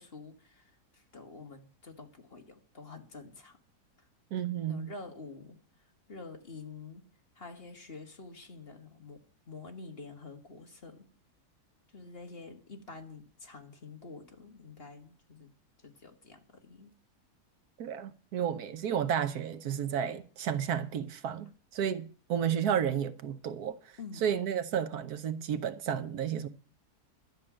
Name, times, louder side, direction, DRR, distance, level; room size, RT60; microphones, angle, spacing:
voice 1, 0.0-3.6 4.6-5.6 6.1-7.1 7.4-11.1 11.9-15.5 15.8-16.9 24.0-24.3, left 3 dB, 40° left, 1.9 m, -48 dB
voice 2, 4.3-4.9 17.8-26.5, right 8 dB, 75° right, 1.4 m, -32 dB
12.0 x 6.7 x 8.7 m
omnidirectional pair, 1.7 m